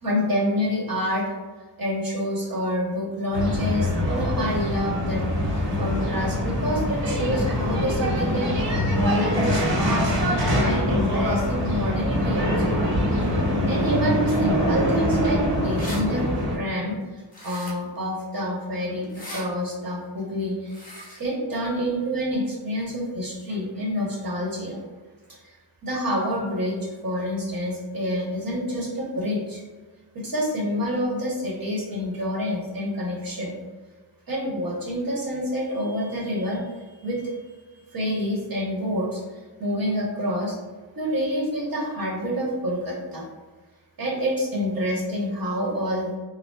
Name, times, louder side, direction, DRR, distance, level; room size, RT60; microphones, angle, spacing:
voice 1, 0.0-1.3 1.8-10.1 10.5-12.5 13.3-24.8 25.4-25.6 25.8-29.6 30.1-33.5 34.3-40.6 40.9-43.3 44.0-46.2, equal, 50° right, -4 dB, 1.2 m, -28 dB
sound 1, 3.3-16.6, equal, 85° right, 1.0 m, -24 dB
sound 2, 15.8-16.0 17.3-18.0 19.0-19.5 20.7-21.2, left 1 dB, 20° left, 0.7 m, -38 dB
5.4 x 2.2 x 2.3 m, 1.3 s
wide cardioid pair, 160°, 43 cm